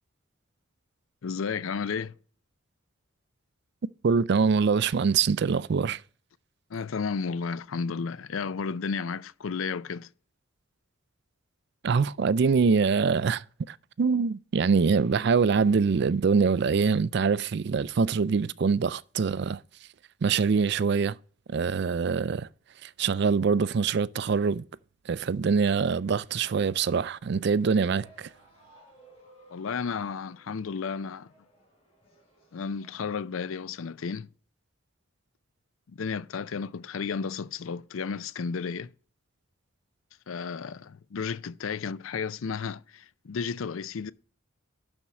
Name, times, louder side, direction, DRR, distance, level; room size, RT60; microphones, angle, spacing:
voice 1, 1.2-2.1 6.7-10.1 29.5-31.3 32.5-34.3 35.9-38.9 40.3-44.1, left 5 dB, 75° left, 0.5 m, -33 dB
voice 2, 4.0-6.0 11.8-19.6 20.2-21.2 21.5-22.5 22.8-24.6 25.1-28.3, right 5 dB, 55° right, 0.4 m, -24 dB
sound 1, 27.9-33.1, right 1 dB, 30° left, 3.9 m, -59 dB
11.5 x 4.4 x 6.0 m
head